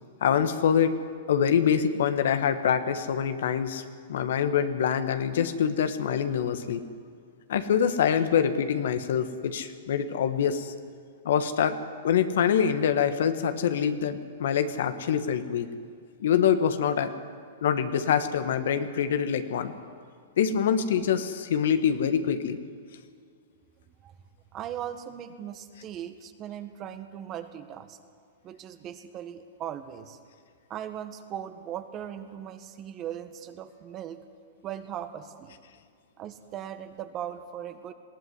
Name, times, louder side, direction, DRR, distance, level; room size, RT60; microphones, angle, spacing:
voice 1, 0.2-1.0 1.3-3.8 4.1-6.8 7.5-10.7 11.2-11.8 12.0-15.7 16.2-17.1 17.6-19.7 20.4-22.6, left 8 dB, 70° left, 9 dB, 1.5 m, -25 dB
voice 2, 24.5-28.0 28.4-30.2 30.7-34.2 34.6-35.5 36.2-37.9, right 10 dB, 35° right, 9 dB, 1.6 m, -38 dB
20.5 x 16.0 x 9.7 m, 2.1 s
hypercardioid pair, 125°, 0 cm